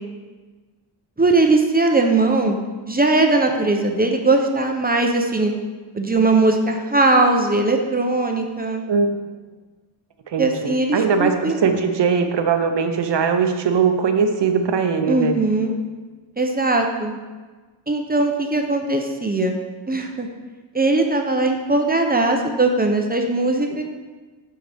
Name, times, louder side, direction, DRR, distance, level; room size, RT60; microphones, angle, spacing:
voice 1, 1.2-2.6 2.9-5.5 5.9-8.8 10.4-11.8 15.1-15.7 16.4-17.2 17.9-19.6 19.9-20.3 20.7-23.8, right 2 dB, 20° right, 3 dB, 0.6 m, -19 dB
voice 2, 10.3-15.3, right 6 dB, 65° right, 6 dB, 0.8 m, -20 dB
8.9 x 5.7 x 3.4 m, 1.3 s
wide cardioid pair, 165°, 45 cm